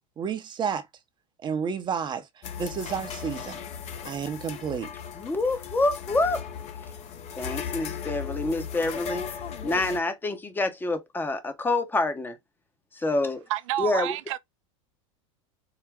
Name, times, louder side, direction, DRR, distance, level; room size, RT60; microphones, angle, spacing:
voice 1, 0.2-0.9 1.4-2.2 2.6-3.6 4.0-4.9, right 6 dB, 25° right, 0.8 m, -30 dB
sound 1, 2.4-10.0, left 7 dB, 40° left, 0.9 m, -37 dB
voice 2, 5.2-6.4 7.4-9.2 9.6-12.4 13.0-13.4 13.8-14.2, left 2 dB, 10° left, 0.9 m, -27 dB
voice 3, 13.5-14.4, right 15 dB, 70° right, 0.5 m, -29 dB
4.9 x 2.1 x 3.5 m
hypercardioid pair, 110°, 17 cm